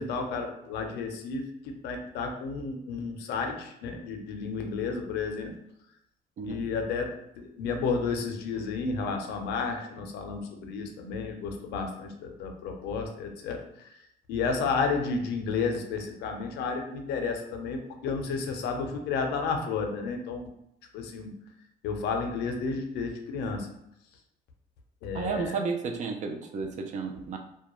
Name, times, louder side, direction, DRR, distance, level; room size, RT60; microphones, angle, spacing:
voice 1, 0.0-5.6 6.4-20.5 20.9-21.3 21.8-23.7 25.0-25.6, left 4 dB, 80° left, 4 dB, 0.5 m, -32 dB
voice 2, 25.1-27.4, right 4 dB, 45° right, 4 dB, 0.4 m, -32 dB
2.2 x 2.1 x 2.9 m, 0.78 s
cardioid pair, 110°, 17 cm